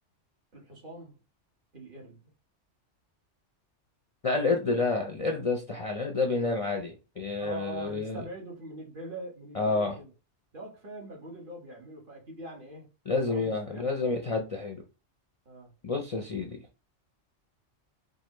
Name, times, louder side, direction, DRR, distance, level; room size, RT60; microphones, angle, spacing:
voice 1, 0.5-1.2 1.7-2.3 7.4-10.1 10.5-12.9 13.2-14.1 15.4-15.7, right 2 dB, 45° right, 1.6 m, -43 dB
voice 2, 4.2-8.2 9.5-10.0 13.1-14.8 15.8-16.6, left 3 dB, 40° left, 0.5 m, -29 dB
4.9 x 2.4 x 3.0 m
omnidirectional pair, 1.3 m